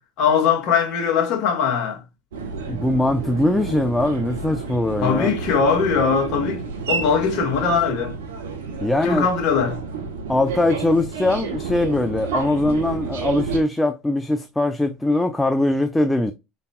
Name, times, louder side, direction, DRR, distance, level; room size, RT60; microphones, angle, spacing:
voice 1, 0.2-2.0 5.0-8.1 9.0-9.8, left 6 dB, 60° left, 1.5 m, -20 dB
sound 1, 2.3-13.6, right 5 dB, 85° right, 0.9 m, -30 dB
voice 2, 2.6-5.3 8.8-9.3 10.3-16.3, left 1 dB, 10° left, 0.5 m, -21 dB
5.3 x 4.1 x 2.2 m
hypercardioid pair, 75°, 0 cm